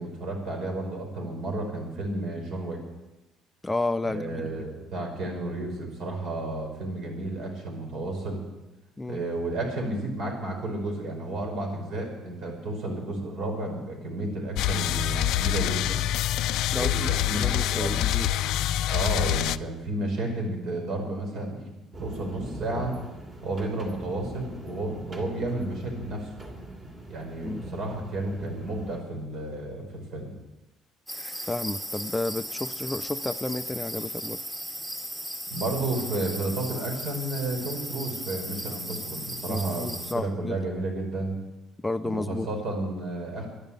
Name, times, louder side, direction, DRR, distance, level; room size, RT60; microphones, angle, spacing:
voice 1, 0.0-2.8 4.0-8.4 9.1-16.0 16.7-18.0 18.9-21.7 22.0-23.0 23.4-26.3 27.1-30.3 35.5-41.4 42.0-43.5, right 2 dB, 60° right, 2 dB, 5.2 m, -32 dB
voice 2, 3.6-4.6 9.0-9.2 16.7-18.3 27.4-27.6 31.5-34.4 39.5-40.6 41.8-42.5, left 2 dB, 10° left, 9 dB, 0.4 m, -31 dB
sound 1, 14.6-19.6, left 12 dB, 75° left, 0.4 m, -26 dB
sound 2, 21.9-29.0, right 1 dB, 30° right, 2.9 m, -41 dB
sound 3, 31.1-40.1, equal, 15° right, 1.9 m, -36 dB
11.5 x 11.0 x 8.9 m, 1.0 s
cardioid pair, 145°, 0 cm